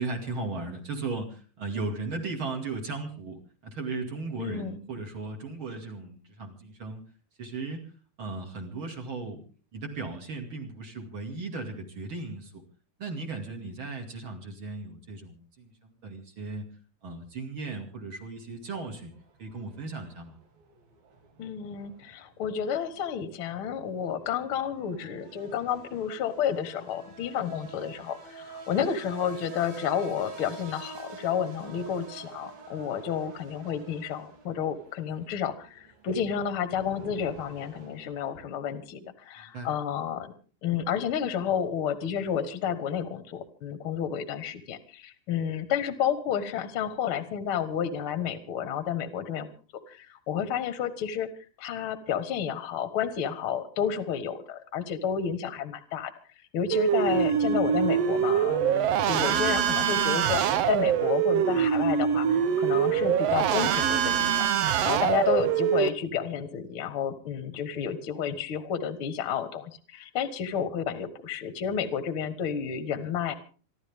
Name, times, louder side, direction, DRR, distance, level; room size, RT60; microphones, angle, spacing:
voice 1, 0.0-7.0 7.4-7.9 8.2-9.4 9.7-12.6 13.0-16.7 17.0-19.1 19.4-20.4 39.4-39.7, right 3 dB, 40° right, 4 dB, 2.8 m, -36 dB
voice 2, 4.4-4.8 21.4-40.3 40.6-49.5 49.9-51.3 51.6-56.1 56.5-64.5 64.8-73.3, left 8 dB, 55° left, 11 dB, 1.6 m, -31 dB
sound 1, 18.6-38.4, right 4 dB, 90° right, 4.5 m, -48 dB
sound 2, 56.7-65.9, right 8 dB, 70° right, 1.5 m, -24 dB
27.5 x 12.5 x 3.6 m, 0.38 s
omnidirectional pair, 4.1 m